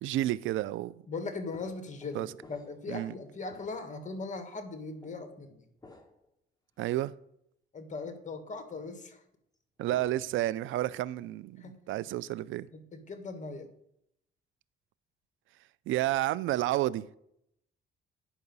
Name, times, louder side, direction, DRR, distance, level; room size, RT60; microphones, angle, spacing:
voice 1, 0.0-1.0 2.1-2.3 2.9-3.1 6.8-7.1 9.8-12.7 15.9-17.1, right 15 dB, 80° right, 0.4 m, -30 dB
voice 2, 1.1-5.7 7.7-9.2 11.6-11.8 12.7-13.7, left 3 dB, 40° left, 1.6 m, -39 dB
sound 1, 1.5-3.0 3.4-4.1 5.0-5.2 5.8-6.3 6.8-6.9 9.5-10.5 10.8-11.2, left 3 dB, 20° left, 1.5 m, -55 dB
9.8 x 5.7 x 5.4 m
cardioid pair, 90°, 20 cm